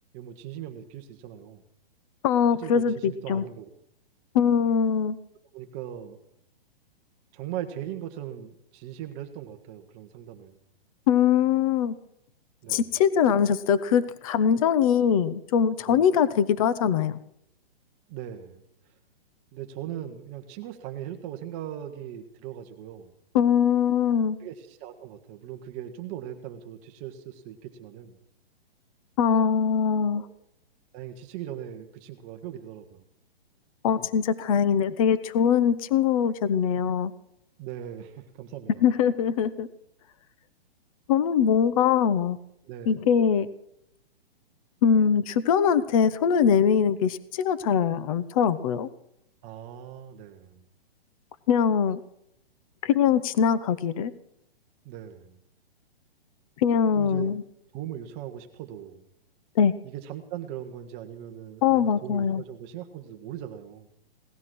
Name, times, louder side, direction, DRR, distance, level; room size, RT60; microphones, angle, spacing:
voice 1, 0.1-1.6 2.6-3.7 5.5-6.2 7.3-10.6 12.6-12.9 15.9-16.0 18.1-18.6 18.9-19.0 19.5-23.1 24.4-28.2 30.1-30.3 30.9-33.0 37.6-38.9 42.6-43.0 49.4-50.6 54.8-55.4 56.9-57.3 57.7-59.0 59.8-63.9, right 11 dB, 25° right, 4 dB, 1.2 m, -39 dB
voice 2, 2.2-3.4 4.3-5.2 11.1-11.9 12.7-17.2 23.3-24.4 29.2-30.2 33.8-37.1 38.8-39.7 41.1-42.4 42.9-43.5 44.8-48.9 51.5-52.0 52.8-54.1 56.6-57.4 59.6-59.7 61.6-62.4, left 7 dB, 35° left, 15 dB, 0.9 m, -22 dB
18.0 x 13.0 x 6.2 m, 0.74 s
hypercardioid pair, 160°, 31 cm